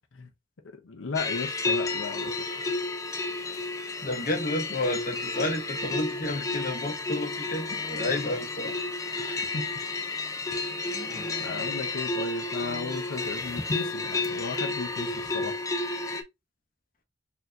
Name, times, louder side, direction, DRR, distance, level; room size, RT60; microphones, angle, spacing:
voice 1, 0.7-2.4 9.2-9.7 10.6-15.6, left 4 dB, 80° left, 0.6 m, -36 dB
sound 1, 1.2-16.2, left 3 dB, 15° left, 0.4 m, -31 dB
voice 2, 4.0-8.7, left 1 dB, 45° left, 0.8 m, -31 dB
4.4 x 2.7 x 2.4 m
head